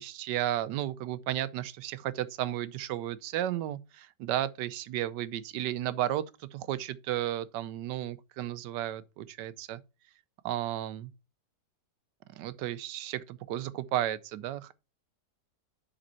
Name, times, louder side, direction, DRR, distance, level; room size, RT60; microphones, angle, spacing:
voice 1, 0.0-9.8 10.4-11.1 12.4-14.7, right 12 dB, 85° right, 1.3 m, -33 dB
7.1 x 5.2 x 4.3 m
omnidirectional pair, 1.8 m